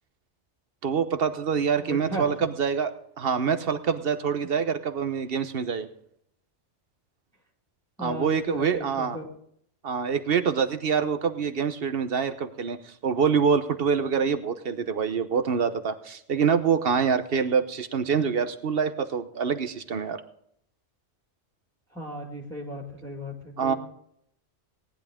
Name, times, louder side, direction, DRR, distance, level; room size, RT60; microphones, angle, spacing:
voice 1, 0.8-5.9 8.0-9.2 9.8-20.2 23.6-23.7, right 6 dB, 55° right, 9 dB, 1.1 m, -26 dB
voice 2, 1.8-2.3 8.0-9.3 21.9-23.8, equal, 5° left, -2 dB, 2.0 m, -35 dB
18.0 x 10.5 x 3.7 m, 0.69 s
omnidirectional pair, 1.2 m